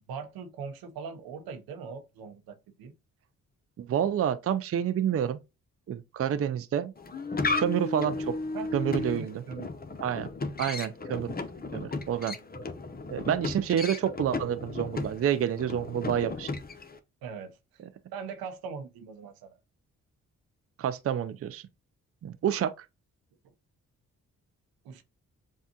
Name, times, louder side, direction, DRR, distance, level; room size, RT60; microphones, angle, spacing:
voice 1, 0.1-2.9 8.5-8.7 9.0-9.7 17.2-17.8 18.1-19.6 24.8-25.0, right 6 dB, 75° right, 0.8 m, -41 dB
voice 2, 3.8-5.4 5.9-6.9 7.6-8.3 8.7-9.4 10.0-10.3 10.6-11.3 11.7-12.4 13.1-16.5 20.8-21.6 22.2-22.9, right 9 dB, 40° right, 0.5 m, -28 dB
sound 1, 7.0-17.0, left 3 dB, 25° left, 0.8 m, -35 dB
7.1 x 2.4 x 2.8 m
hypercardioid pair, 40°, 36 cm